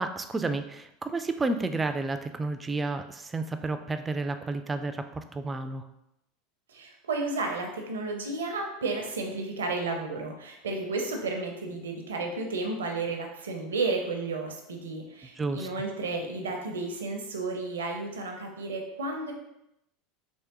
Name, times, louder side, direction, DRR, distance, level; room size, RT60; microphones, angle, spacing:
voice 1, 0.0-5.8 15.4-15.7, right 3 dB, 20° right, 8 dB, 0.3 m, -31 dB
voice 2, 6.7-19.3, right 3 dB, 80° right, 3 dB, 0.6 m, -32 dB
3.5 x 3.0 x 2.9 m, 0.84 s
hypercardioid pair, 80°, 0 cm